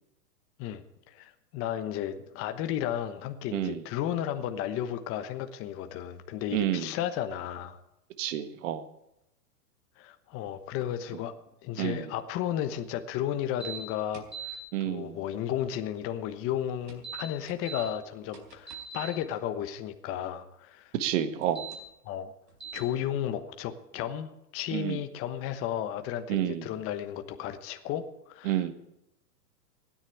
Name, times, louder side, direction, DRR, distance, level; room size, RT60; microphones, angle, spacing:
voice 1, 0.6-7.8 10.0-20.9 22.0-22.3 22.7-28.7, left 10 dB, 25° left, 8 dB, 1.1 m, -34 dB
voice 2, 6.5-6.9 8.2-8.8 11.8-12.0 14.7-15.2 21.0-21.6 24.7-25.0 26.3-26.6 28.4-28.7, right 11 dB, 50° right, 11 dB, 1.6 m, -29 dB
sound 1, 13.6-13.8 14.1-14.6 16.9-17.8 18.3-19.1 21.4-21.7 22.6-22.8, right 7 dB, 85° right, 4.4 m, -39 dB
16.5 x 10.0 x 8.6 m, 0.86 s
hypercardioid pair, 135°, 48 cm